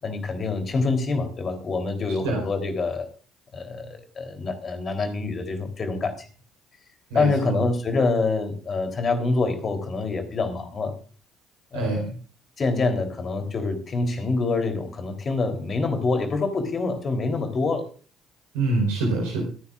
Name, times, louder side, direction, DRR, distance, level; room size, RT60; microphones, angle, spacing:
voice 1, 0.0-3.1 3.5-6.2 7.1-11.0 11.7-12.0 12.6-17.9, left 3 dB, 40° left, 6 dB, 3.5 m, -26 dB
voice 2, 7.1-7.6 11.7-12.1 18.5-19.4, right 2 dB, 75° right, 0 dB, 4.4 m, -25 dB
25.0 x 10.0 x 2.5 m, 0.39 s
figure-of-eight pair, 55°, 0 cm